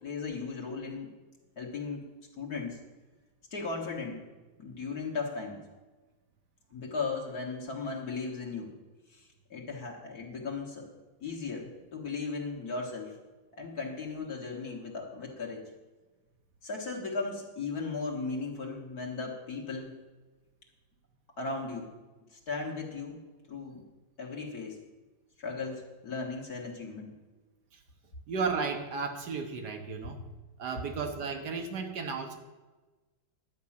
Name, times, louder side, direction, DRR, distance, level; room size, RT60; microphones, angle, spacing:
voice 1, 0.0-1.1 1.6-2.8 3.5-4.2 4.6-5.6 6.7-8.7 9.1-10.9 11.2-13.1 13.6-15.6 16.6-20.0 21.4-21.9 22.3-23.8 24.2-24.8 25.4-27.1, left 4 dB, 55° left, -1 dB, 2.0 m, -37 dB
voice 2, 28.3-30.2 30.6-32.4, right 5 dB, 60° right, 5 dB, 1.6 m, -34 dB
11.0 x 5.4 x 8.6 m, 1.2 s
omnidirectional pair, 2.1 m